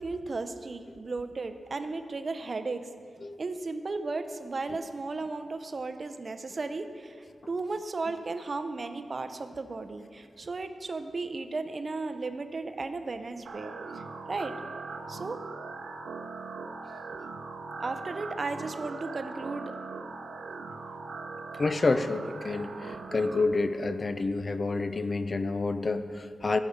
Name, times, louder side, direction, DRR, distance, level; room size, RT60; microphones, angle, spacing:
voice 1, 0.0-2.9 3.4-14.0 14.3-14.5 15.1-15.4 17.8-19.8, right 3 dB, 40° right, 9 dB, 0.5 m, -35 dB
sound 1, 13.4-23.4, right 4 dB, 85° right, 0.8 m, -40 dB
voice 2, 21.6-26.6, left 3 dB, 35° left, 10 dB, 0.4 m, -28 dB
16.0 x 5.4 x 5.0 m, 2.1 s
wide cardioid pair, 150°, 0 cm